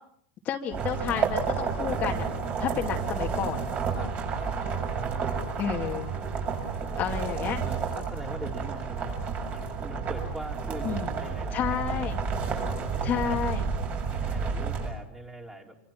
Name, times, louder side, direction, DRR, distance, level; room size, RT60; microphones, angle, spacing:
voice 1, 0.4-2.3 2.6-3.6 5.6-6.1 7.0-7.6 10.8-11.1 11.5-12.2 13.0-13.6, left 8 dB, 30° left, 2 dB, 2.3 m, -30 dB
sound 1, 0.7-14.9, right 5 dB, 30° right, 6.9 m, -31 dB
voice 2, 3.9-4.6 4.9-5.5 7.1-7.2 7.6-12.2 12.5-13.4 14.1-15.8, right 1 dB, 10° right, 2 dB, 3.9 m, -42 dB
27.0 x 26.0 x 6.0 m, 0.67 s
supercardioid pair, 155°, 5 cm